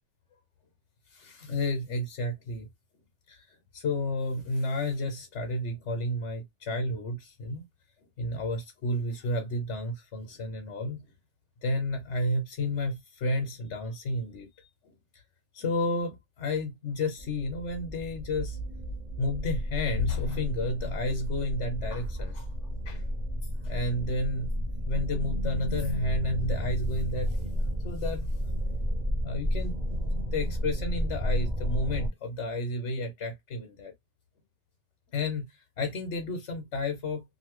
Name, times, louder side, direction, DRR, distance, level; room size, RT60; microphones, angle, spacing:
voice 1, 1.1-2.7 3.3-7.6 8.2-11.0 11.6-15.2 15.5-18.6 19.2-22.5 22.8-23.0 23.6-24.5 24.8-28.3 29.2-30.0 30.3-33.9 35.1-37.2, left 2 dB, 90° left, 1.2 m, -31 dB
sound 1, 17.2-32.1, equal, 35° right, 1.0 m, -32 dB
2.7 x 2.6 x 3.0 m
omnidirectional pair, 1.2 m